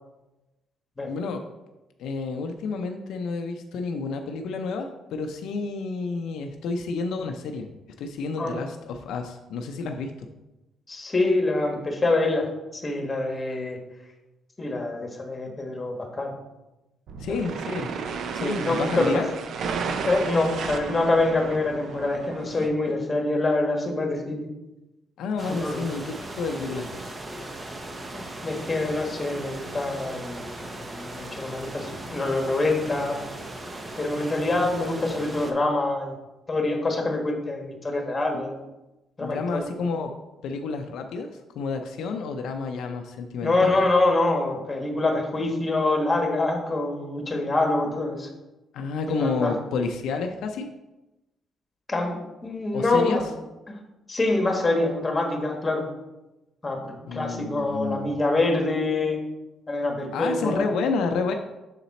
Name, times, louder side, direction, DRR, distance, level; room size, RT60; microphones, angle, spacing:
voice 1, 1.0-1.4 2.0-7.7 8.0-10.3 17.2-17.9 18.3-19.3 22.6-22.7 25.2-27.1 38.3-38.4 39.2-40.1 40.4-43.7 48.7-50.7 52.7-53.2 57.1-58.1 60.1-61.3, left 4 dB, 80° left, 4 dB, 0.5 m, -30 dB
voice 2, 10.9-13.8 14.6-16.3 17.3-17.4 18.3-19.2 20.0-24.5 25.6-25.9 28.1-33.2 34.0-36.1 36.5-38.6 39.2-39.9 43.4-48.3 49.1-49.5 51.9-52.2 52.4-53.2 53.7-53.8 54.1-55.9 56.6-59.2 59.7-60.6, left 2 dB, 25° left, 2 dB, 1.4 m, -25 dB
sound 1, 17.1-22.7, right 5 dB, 65° right, 0.6 m, -33 dB
sound 2, 25.4-35.5, right 1 dB, 25° right, 0.8 m, -38 dB
6.6 x 4.0 x 4.1 m, 1.0 s
cardioid pair, 90°, 0 cm